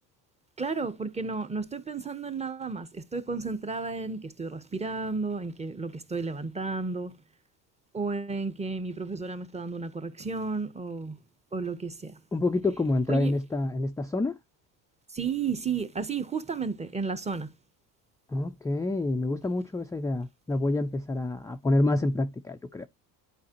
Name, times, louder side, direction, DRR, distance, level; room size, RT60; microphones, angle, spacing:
voice 1, 0.6-7.2 7.9-11.2 11.5-12.2 13.1-13.4 15.1-17.5, right 4 dB, 15° right, 0.8 m, -32 dB
voice 2, 12.3-14.4 18.3-22.9, left 2 dB, 10° left, 0.3 m, -27 dB
11.5 x 4.2 x 2.9 m
supercardioid pair, 90°, 43 cm